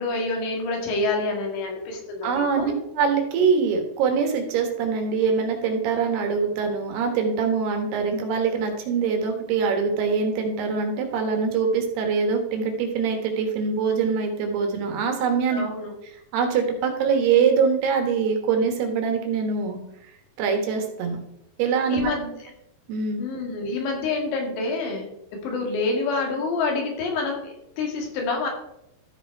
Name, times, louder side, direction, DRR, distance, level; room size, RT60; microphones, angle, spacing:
voice 1, 0.0-2.8 15.5-15.9 21.9-22.3 23.2-25.1 25.4-28.5, left 3 dB, 90° left, 1 dB, 4.2 m, -27 dB
voice 2, 2.2-15.6 16.3-19.8 20.4-21.3 21.6-22.1 22.9-23.2, right 5 dB, 75° right, 4 dB, 3.3 m, -23 dB
13.5 x 5.1 x 4.6 m, 0.80 s
omnidirectional pair, 4.9 m